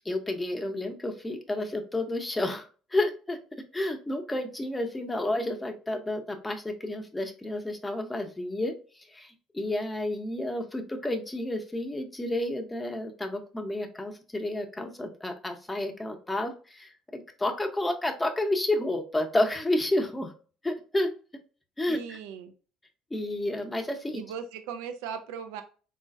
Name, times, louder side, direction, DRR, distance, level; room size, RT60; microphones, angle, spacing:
voice 1, 0.0-3.4 3.7-20.3 20.6-21.1 21.8-22.2 23.1-24.2, left 1 dB, 15° left, 4 dB, 0.7 m, -30 dB
voice 2, 21.9-22.5 24.1-25.6, right 7 dB, 80° right, 8 dB, 0.4 m, -38 dB
3.8 x 2.4 x 2.4 m, 0.37 s
supercardioid pair, 75°, 0 cm